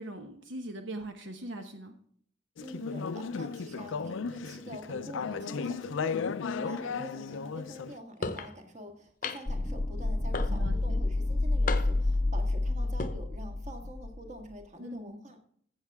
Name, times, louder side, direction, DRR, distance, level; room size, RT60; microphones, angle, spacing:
voice 1, 0.0-1.9 10.5-11.0 14.8-15.2, right 1 dB, 70° right, 6 dB, 1.0 m, -41 dB
Conversation / Chatter, 2.6-7.9, left 5 dB, 80° left, 0.5 m, -35 dB
voice 2, 2.6-15.4, equal, 35° right, 5 dB, 1.7 m, -46 dB
sound 1, 8.2-8.5 9.2-9.6 10.3-10.8 11.7-12.1 12.8-13.1, left 4 dB, 45° left, 0.8 m, -34 dB
sound 2, 9.5-14.3, left 2 dB, 15° left, 0.3 m, -29 dB
14.5 x 7.5 x 3.5 m, 0.62 s
head